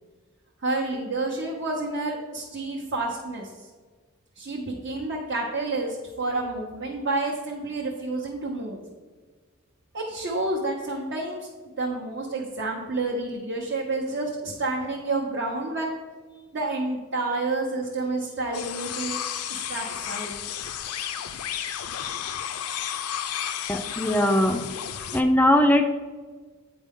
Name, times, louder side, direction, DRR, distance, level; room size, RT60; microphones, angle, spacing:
voice 1, 0.6-3.5 4.4-8.8 9.9-16.0 16.5-19.2 19.5-20.4, right 2 dB, 50° right, -2 dB, 0.8 m, -29 dB
sound 1, 18.5-25.2, left 9 dB, 85° left, 0.5 m, -32 dB
voice 2, 23.7-24.7 25.1-25.9, left 1 dB, 5° left, 6 dB, 0.4 m, -20 dB
8.6 x 4.5 x 3.6 m, 1.4 s
head